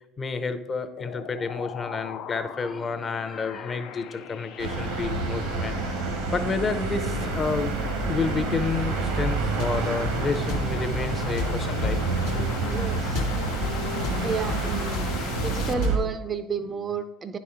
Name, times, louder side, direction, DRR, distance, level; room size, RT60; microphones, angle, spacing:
voice 1, 0.2-7.8 8.1-12.0 12.3-12.5, left 4 dB, 35° left, 9 dB, 0.6 m, -30 dB
sound 1, 1.0-15.7, left 9 dB, 70° left, 0.4 m, -40 dB
sound 2, 4.6-16.0, right 3 dB, 85° right, 1.1 m, -28 dB
sound 3, 9.2-16.1, left 1 dB, 90° left, 1.1 m, -34 dB
voice 2, 12.7-13.2 14.2-15.1 15.4-17.4, right 5 dB, 35° right, 10 dB, 0.4 m, -31 dB
9.6 x 4.2 x 3.6 m, 0.98 s
hypercardioid pair, 75°, 0 cm